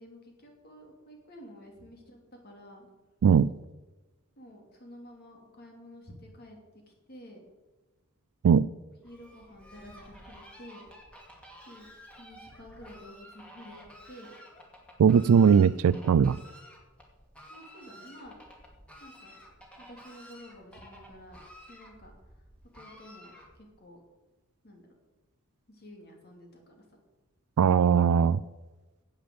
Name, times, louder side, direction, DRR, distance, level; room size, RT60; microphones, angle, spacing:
voice 1, 0.0-2.9 4.4-6.6 6.9-7.5 9.0-10.9 11.7-11.9 12.2-14.3 17.5-18.4 19.0-19.4 19.8-21.4 21.7-22.1 22.7-24.0 24.6-24.9 25.7-26.8, equal, 45° left, 1 dB, 2.9 m, -50 dB
Fowl, 9.0-23.8, equal, 5° left, 2.3 m, -52 dB
voice 2, 15.0-16.4 27.6-28.4, right 7 dB, 80° right, 17 dB, 0.3 m, -20 dB
10.5 x 8.6 x 7.9 m, 1.1 s
head